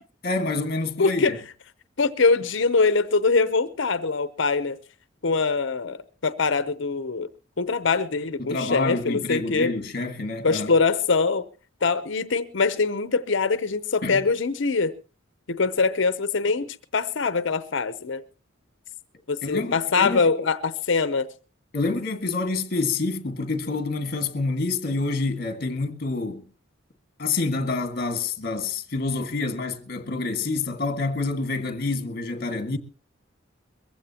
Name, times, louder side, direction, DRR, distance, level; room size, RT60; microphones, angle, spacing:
voice 1, 0.2-1.4 8.4-10.7 14.0-14.2 19.4-20.2 21.7-26.4 27.2-32.8, left 3 dB, 50° left, 1.8 m, -27 dB
voice 2, 1.0-1.4 2.0-4.8 5.2-6.0 6.2-7.3 7.6-9.7 10.4-11.5 11.8-14.9 15.5-16.7 16.9-18.2 19.3-21.3, left 4 dB, 65° left, 0.7 m, -23 dB
22.5 x 15.5 x 2.9 m
head